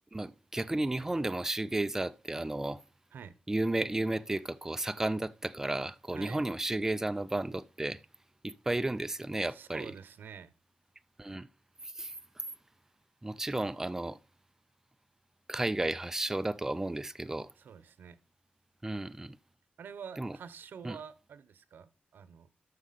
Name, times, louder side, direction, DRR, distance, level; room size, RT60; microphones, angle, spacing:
voice 1, 0.1-2.8 3.5-8.0 8.4-9.9 11.2-11.5 12.0-12.1 13.2-14.2 15.5-17.5 18.8-19.4 20.2-20.4 20.8-21.0, right 2 dB, 15° right, 0.4 m, -33 dB
voice 2, 9.4-10.5 17.6-18.2 19.8-22.5, right 7 dB, 90° right, 0.8 m, -47 dB
12.5 x 6.2 x 4.1 m
wide cardioid pair, 155°, 3 cm